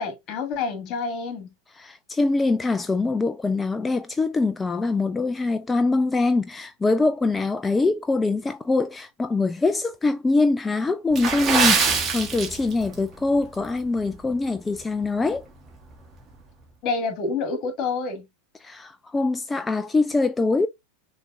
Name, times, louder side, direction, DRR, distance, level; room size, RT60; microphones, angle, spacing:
voice 1, 0.0-1.5 16.8-18.2, left 4 dB, 40° left, 1.8 m, -28 dB
voice 2, 1.7-15.4 18.6-20.7, left 3 dB, 15° left, 0.3 m, -23 dB
Water / Splash splatter, 11.1-13.0 13.3-13.5 14.1-14.3 14.8-14.9, right 5 dB, 25° right, 1.5 m, -23 dB
6.4 x 3.3 x 2.4 m
figure-of-eight pair, 90°, 0 cm